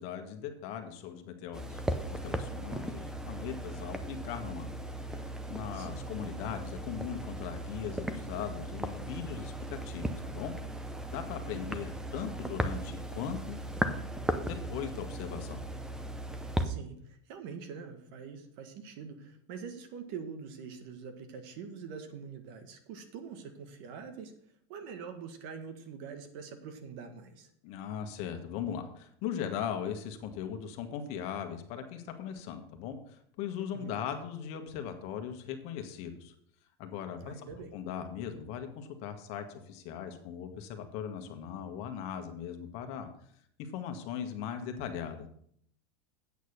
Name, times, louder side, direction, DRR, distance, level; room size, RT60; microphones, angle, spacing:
voice 1, 0.0-1.8 2.1-4.7 5.1-10.5 11.1-13.6 14.4-15.6 27.6-36.3 36.8-37.4 37.7-43.1 43.6-45.3, left 8 dB, 50° left, 6 dB, 1.5 m, -39 dB
sound 1, 1.5-16.7, right 1 dB, 5° right, 0.6 m, -37 dB
voice 2, 5.7-6.1 11.5-11.8 16.6-24.3 24.7-27.5 33.6-33.9 37.2-37.7, right 6 dB, 55° right, 7 dB, 1.6 m, -44 dB
8.4 x 6.6 x 6.5 m, 0.66 s
supercardioid pair, 150°, 14 cm